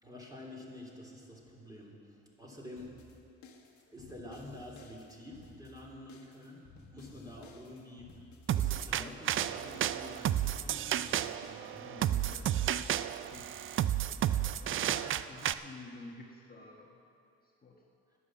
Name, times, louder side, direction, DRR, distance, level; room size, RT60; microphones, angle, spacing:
voice 1, 0.0-1.9 2.4-2.9 3.9-6.6 6.9-8.1 8.5-12.5 14.1-14.5, left 1 dB, 10° right, -3 dB, 3.0 m, -49 dB
sound 1, 2.8-13.5, left 3 dB, 75° left, 1.5 m, -56 dB
sound 2, 8.5-15.5, right 11 dB, 45° right, 0.4 m, -32 dB
voice 2, 11.8-13.5 14.6-17.0 17.4-17.8, left 2 dB, 30° left, -1 dB, 1.3 m, -51 dB
11.0 x 9.9 x 7.4 m, 2.7 s
cardioid pair, 95°, 30 cm